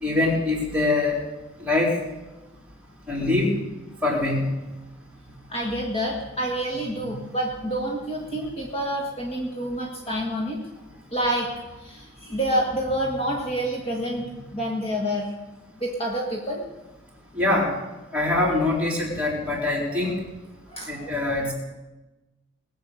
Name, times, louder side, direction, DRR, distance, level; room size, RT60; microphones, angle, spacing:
voice 1, 0.0-1.2 1.6-1.9 3.1-3.5 4.0-4.5 17.3-17.7 18.1-20.2 20.9-21.5, left 2 dB, 5° right, -3 dB, 4.1 m, -23 dB
voice 2, 5.5-10.6 11.1-11.5 11.8-15.3 15.8-16.6 19.5-19.6 20.7-21.2, right 1 dB, 30° left, -1 dB, 1.7 m, -28 dB
20.5 x 8.0 x 6.8 m, 1.1 s
head